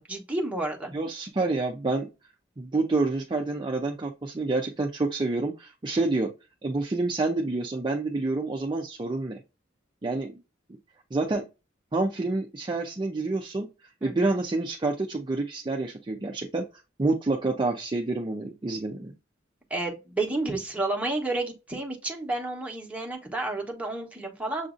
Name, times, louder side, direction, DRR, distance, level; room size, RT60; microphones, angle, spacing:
voice 1, 0.0-0.9 14.0-14.4 19.7-24.7, right 2 dB, 5° right, 1.0 m, -31 dB
voice 2, 0.9-2.1 2.6-6.3 6.6-9.4 10.0-10.4 11.1-11.4 11.9-16.6 17.0-19.1, right 2 dB, 25° right, 0.5 m, -28 dB
7.0 x 2.6 x 2.5 m
head